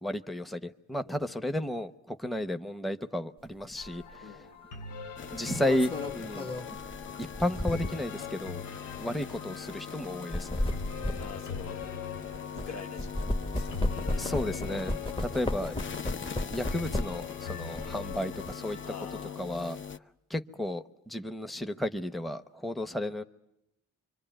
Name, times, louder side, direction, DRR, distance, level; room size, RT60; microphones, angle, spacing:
voice 1, 0.0-4.0 5.3-6.5 7.4-8.6 9.0-10.5 14.2-15.7 16.5-18.8 19.4-19.8 20.3-23.2, left 1 dB, ahead, 0.9 m, -33 dB
voice 2, 1.0-1.5 4.2-4.9 11.2-11.9 12.5-13.8 14.1-14.3 14.7-16.0 18.8-19.6, left 5 dB, 60° left, 1.5 m, -47 dB
sound 1, 3.8-19.3, left 7 dB, 85° left, 1.3 m, -43 dB
sound 2, 3.8-4.0 5.3-8.2 8.8-9.0 10.1-12.7 13.0-17.3 17.7-18.5, left 1 dB, 20° left, 1.2 m, -34 dB
sound 3, 5.2-20.0, left 7 dB, 40° left, 0.9 m, -42 dB
25.5 x 25.0 x 9.0 m
cardioid pair, 90°, 30 cm